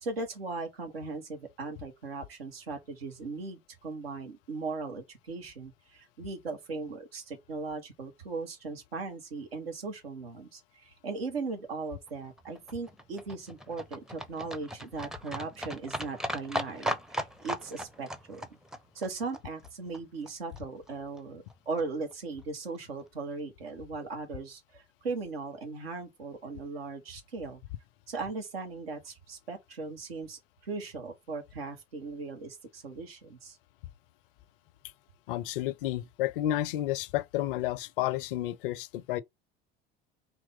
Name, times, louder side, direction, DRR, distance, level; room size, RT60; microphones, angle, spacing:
voice 1, 0.0-18.6 18.9-27.6 28.1-33.6, right 4 dB, 75° right, 1.3 m, -38 dB
Livestock farm animals working animals, 12.1-20.3 20.6-20.7 20.9-21.0 21.2-21.3 21.5-21.6 21.8-21.9 22.1-22.2 22.4-22.5 22.8-22.9, equal, ahead, 0.6 m, -38 dB
voice 2, 35.3-39.2, left 14 dB, 60° left, 0.5 m, -31 dB
3.9 x 3.0 x 3.6 m
figure-of-eight pair, 65°, 30 cm